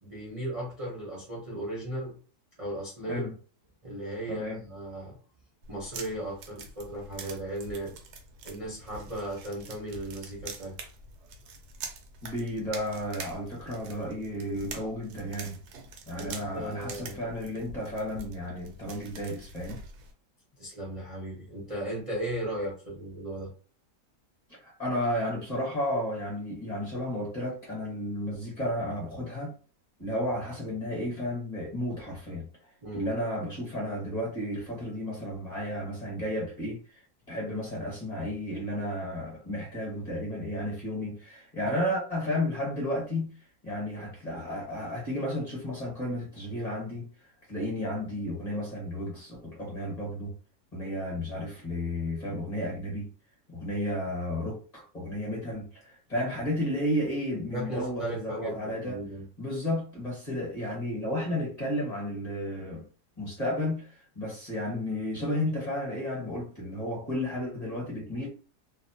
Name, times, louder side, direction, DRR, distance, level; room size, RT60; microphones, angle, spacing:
voice 1, 0.0-2.2 2.6-3.2 3.8-5.2 5.7-8.0 8.4-10.8 16.2-17.2 20.6-23.5 32.8-33.1 57.5-59.3, right 1 dB, 35° right, 0.6 m, -36 dB
voice 2, 3.0-3.3 4.3-4.6 12.2-15.6 16.1-19.8 24.6-29.5 30.0-32.5 32.9-43.3 43.6-47.1 47.5-50.3 50.7-53.1 53.5-59.0 59.4-62.8 63.2-68.3, left 1 dB, 30° left, 1.0 m, -33 dB
sound 1, 5.6-20.1, right 4 dB, 75° right, 1.1 m, -45 dB
2.7 x 2.1 x 2.7 m
omnidirectional pair, 1.7 m